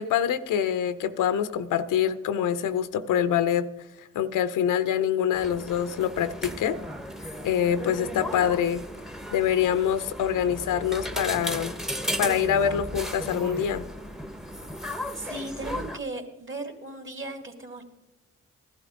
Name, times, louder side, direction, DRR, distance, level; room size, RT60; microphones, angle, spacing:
voice 1, 0.0-3.7 4.0-6.8 7.4-8.8 9.3-11.7 12.2-13.8, left 9 dB, 75° left, 13 dB, 0.7 m, -25 dB
sound 1, 5.3-16.0, equal, ahead, 0.9 m, -35 dB
voice 2, 15.1-17.8, right 2 dB, 40° right, 4 dB, 2.7 m, -37 dB
15.5 x 11.5 x 3.8 m, 0.96 s
supercardioid pair, 50°, 32 cm